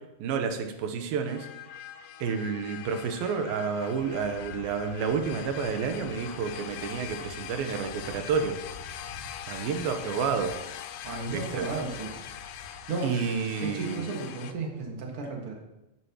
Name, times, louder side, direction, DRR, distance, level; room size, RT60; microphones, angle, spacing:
voice 1, 0.2-1.5 2.2-8.6 9.5-10.5 11.3-11.7 13.0-14.0, right 6 dB, 90° right, 6 dB, 2.8 m, -30 dB
sound 1, 1.3-14.5, left 11 dB, 85° left, 2.5 m, -42 dB
Wind, 3.7-12.9, left 1 dB, 40° left, 1.9 m, -49 dB
voice 2, 11.0-12.2 12.9-13.1 13.6-15.5, right 3 dB, 45° right, 0 dB, 2.2 m, -34 dB
12.5 x 11.0 x 3.0 m, 0.98 s
omnidirectional pair, 4.2 m